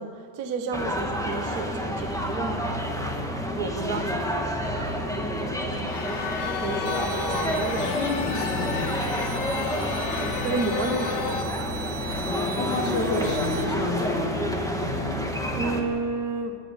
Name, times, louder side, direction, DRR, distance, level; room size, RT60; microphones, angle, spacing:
voice 1, 0.0-3.1 3.5-4.0 4.3-5.9 6.5-8.3 9.8-9.9 10.4-11.5 15.5-16.6, right 3 dB, 85° right, 6 dB, 0.8 m, -32 dB
sound 1, 0.7-15.8, equal, ahead, 0.8 m, -29 dB
voice 2, 3.6-4.2 7.8-9.0 12.2-14.5, left 2 dB, 45° left, 0 dB, 3.8 m, -31 dB
sound 2, 5.9-11.4, left 6 dB, 90° left, 2.8 m, -32 dB
sound 3, 6.9-13.7, right 7 dB, 70° right, 2.6 m, -39 dB
29.0 x 10.0 x 9.7 m, 2.6 s
omnidirectional pair, 3.7 m